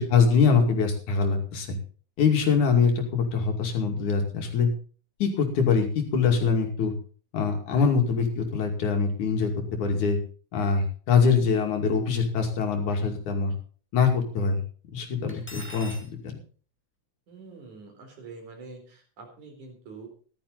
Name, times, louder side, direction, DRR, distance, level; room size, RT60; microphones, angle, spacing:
voice 1, 0.0-1.8 2.2-4.7 5.2-6.9 7.3-10.2 10.5-13.5 13.9-14.6 14.9-16.0 16.2-16.4, left 5 dB, 85° left, 4 dB, 3.9 m, -23 dB
Cutlery silverware, 15.3-16.1, equal, 5° left, 1.7 m, -42 dB
voice 2, 17.3-20.1, right 4 dB, 90° right, 3 dB, 5.4 m, -45 dB
14.5 x 12.5 x 4.0 m, 0.40 s
omnidirectional pair, 3.3 m